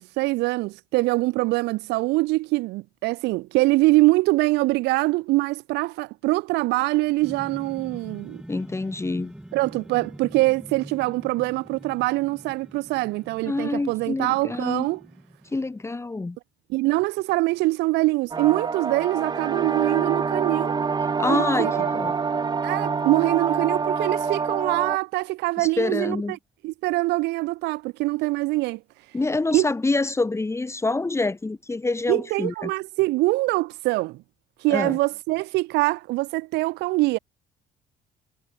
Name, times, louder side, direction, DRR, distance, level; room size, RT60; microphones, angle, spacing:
voice 1, 0.0-8.4 9.5-15.0 16.7-20.8 21.3-21.9 22.6-26.4 26.6-28.8 29.5-29.7 32.1-34.2 34.6-37.2, right 21 dB, 90° right, 1.0 m, -24 dB
sound 1, 7.2-15.8, right 1 dB, 5° right, 5.3 m, -44 dB
voice 2, 8.5-9.3 13.5-14.9 15.5-16.4 21.2-22.1 25.6-26.4 29.1-32.7 34.7-35.0, left 3 dB, 15° left, 2.9 m, -26 dB
sound 2, 18.3-25.0, right 5 dB, 25° right, 1.1 m, -26 dB
cardioid pair, 110°, 17 cm